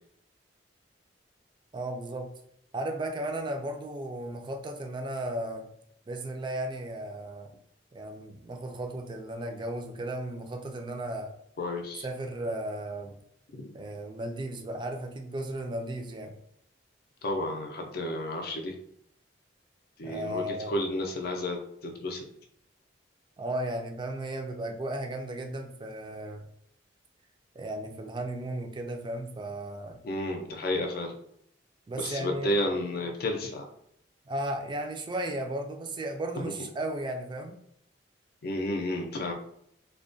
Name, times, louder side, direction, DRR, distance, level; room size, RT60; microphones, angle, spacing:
voice 1, 1.7-2.3 2.7-5.7 6.1-7.5 7.9-11.3 12.0-13.2 13.7-16.3 20.0-20.7 23.4-26.5 27.5-30.0 31.9-32.5 34.3-37.6, right 1 dB, 25° right, 3 dB, 0.3 m, -35 dB
voice 2, 11.6-12.0 13.5-13.6 17.2-18.7 20.0-22.2 30.0-31.1 32.0-33.7 38.4-39.3, left 1 dB, 60° left, 3 dB, 0.5 m, -31 dB
2.3 x 2.1 x 2.5 m, 0.70 s
head